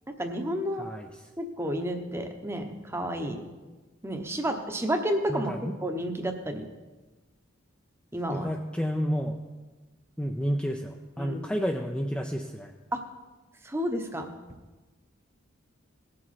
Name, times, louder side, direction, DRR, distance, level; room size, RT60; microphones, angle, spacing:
voice 1, 0.1-0.8 1.4-3.4 4.0-5.5 5.8-6.6 8.1-8.5 11.2-11.5 12.9-13.0 13.6-14.3, equal, 10° right, 5 dB, 0.9 m, -31 dB
voice 2, 0.8-1.3 5.3-5.7 8.3-9.4 10.2-12.7, equal, 5° left, 1 dB, 0.5 m, -31 dB
18.5 x 7.6 x 4.2 m, 1.2 s
head